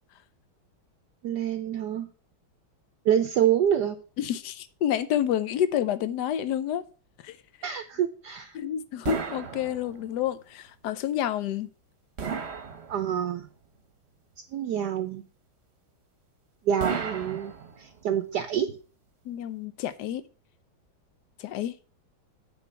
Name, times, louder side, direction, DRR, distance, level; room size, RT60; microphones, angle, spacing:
voice 1, 1.2-2.1 3.0-4.0 7.6-8.6 12.9-13.5 14.5-15.2 16.7-18.8, right 9 dB, 65° right, 1.1 m, -27 dB
voice 2, 4.2-6.8 7.2-7.4 8.5-11.7 19.2-20.2 21.4-21.7, left 10 dB, 65° left, 1.1 m, -29 dB
sound 1, 9.0-10.2 12.2-13.4 16.8-18.1, right 6 dB, 40° right, 1.0 m, -34 dB
9.3 x 4.0 x 6.8 m
omnidirectional pair, 2.2 m